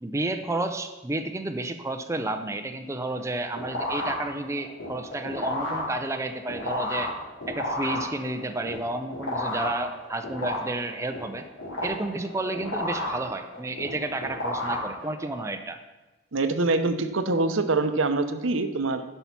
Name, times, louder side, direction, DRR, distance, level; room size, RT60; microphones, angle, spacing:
voice 1, 0.0-7.1 7.5-11.4 11.8-15.8, right 2 dB, 15° right, 7 dB, 0.5 m, -31 dB
sound 1, 3.1-15.5, left 1 dB, 90° left, 3.6 m, -33 dB
voice 2, 16.3-19.0, right 3 dB, 75° right, 9 dB, 0.8 m, -24 dB
11.5 x 5.5 x 5.8 m, 1.1 s
head